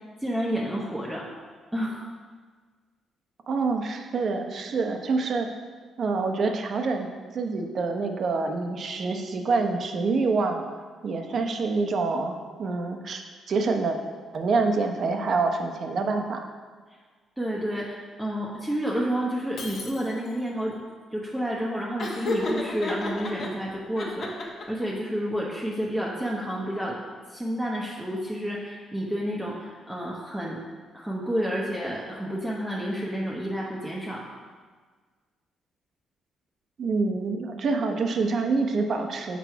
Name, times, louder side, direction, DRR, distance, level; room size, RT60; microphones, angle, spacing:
voice 1, 0.2-1.2 1.7-2.0 17.4-20.7 21.1-27.0 27.3-30.6 30.9-34.2, equal, 5° right, -4 dB, 0.9 m, -30 dB
voice 2, 3.5-5.5 6.0-7.1 7.3-10.6 11.0-14.0 14.3-16.4 36.8-39.4, right 4 dB, 55° right, 4 dB, 0.7 m, -26 dB
Shatter, 19.6-20.6, left 4 dB, 75° left, 0.9 m, -41 dB
Laughter, 22.0-23.5 24.0-24.8, left 2 dB, 50° left, 1.1 m, -30 dB
6.2 x 4.6 x 4.6 m, 1.5 s
cardioid pair, 90°, 0 cm